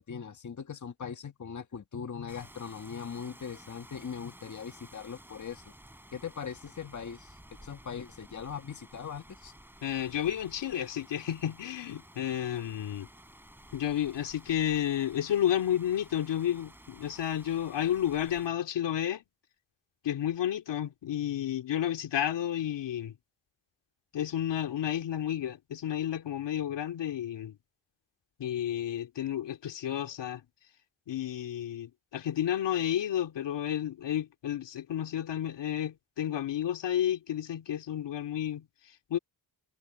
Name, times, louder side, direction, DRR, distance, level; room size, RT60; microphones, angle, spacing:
voice 1, 0.0-5.7 6.1-9.5, left 7 dB, 45° left, 1.7 m, -40 dB
Rain, 2.3-18.5, right 1 dB, 5° right, 5.2 m, -54 dB
voice 2, 9.8-13.1 13.7-19.2 20.0-23.1 24.1-27.6 28.4-30.4 31.1-39.2, left 10 dB, 85° left, 2.7 m, -31 dB
cardioid pair, 80°, 42 cm